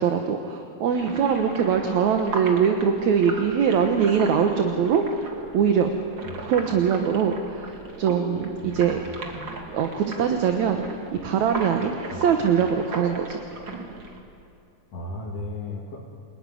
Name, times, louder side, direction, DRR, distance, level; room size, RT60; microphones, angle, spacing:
voice 1, 0.0-5.3 5.5-5.9 6.5-9.2 9.7-11.0 11.2-13.4, right 7 dB, 65° right, 4 dB, 2.5 m, -22 dB
sound 1, 0.9-14.2, right 2 dB, 40° right, 2.9 m, -37 dB
voice 2, 8.6-8.9 12.1-12.2 14.9-16.0, left 2 dB, 50° left, -5 dB, 3.5 m, -35 dB
29.0 x 18.5 x 10.0 m, 2.6 s
omnidirectional pair, 3.6 m